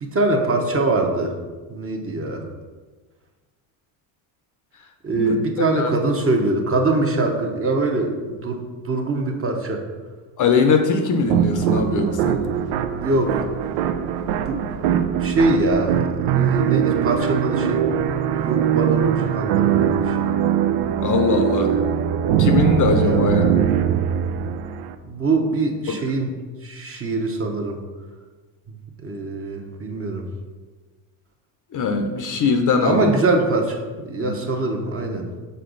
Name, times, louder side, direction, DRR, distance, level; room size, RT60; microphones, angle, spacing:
voice 1, 0.0-1.3 1.7-2.4 5.0-9.8 13.0-13.5 14.5-14.6 15.2-16.0 16.3-17.8 18.3-20.3 23.0-23.4 25.0-26.3 26.6-27.8 29.0-30.3 32.8-35.3, right 2 dB, 30° right, 2 dB, 0.9 m, -23 dB
voice 2, 10.4-12.4 21.0-21.8 22.4-23.5 25.9-26.0 31.7-33.2 34.2-34.3, left 4 dB, 40° left, 6 dB, 0.6 m, -21 dB
sound 1, 11.3-25.0, right 9 dB, 85° right, 0.6 m, -21 dB
6.6 x 4.6 x 3.9 m, 1.3 s
cardioid pair, 115°, 48 cm